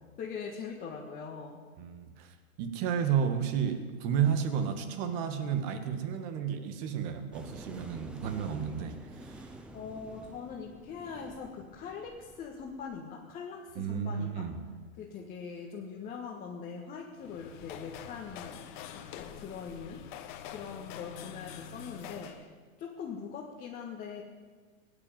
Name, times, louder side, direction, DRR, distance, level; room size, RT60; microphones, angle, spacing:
voice 1, 0.2-1.6 9.7-14.5 15.0-18.7 18.9-22.5 22.8-24.2, left 6 dB, 20° left, -2 dB, 1.5 m, -42 dB
voice 2, 1.8-2.3 2.6-9.5 13.8-14.6, right 8 dB, 35° right, 8 dB, 1.9 m, -32 dB
sound 1, 7.3-12.9, right 1 dB, ahead, 0.7 m, -49 dB
sound 2, 17.1-22.5, left 9 dB, 35° left, 1.2 m, -45 dB
17.5 x 8.8 x 9.1 m, 1.5 s
hypercardioid pair, 135°, 42 cm